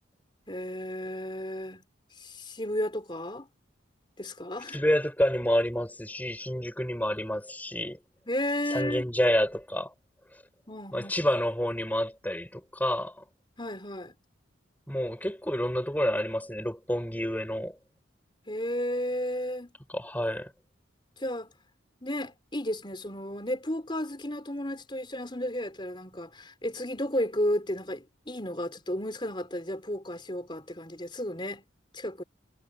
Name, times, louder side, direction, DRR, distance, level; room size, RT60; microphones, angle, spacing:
voice 1, 0.5-1.8 2.2-3.5 4.2-4.8 8.3-9.1 10.7-11.1 13.6-14.1 18.5-19.7 21.2-21.5 22.0-31.6 31.9-32.2, left 1 dB, 25° left, 4.5 m, -33 dB
voice 2, 4.7-8.0 8.7-9.9 10.9-13.2 14.9-17.8 19.9-20.5, equal, 10° left, 5.6 m, -28 dB
head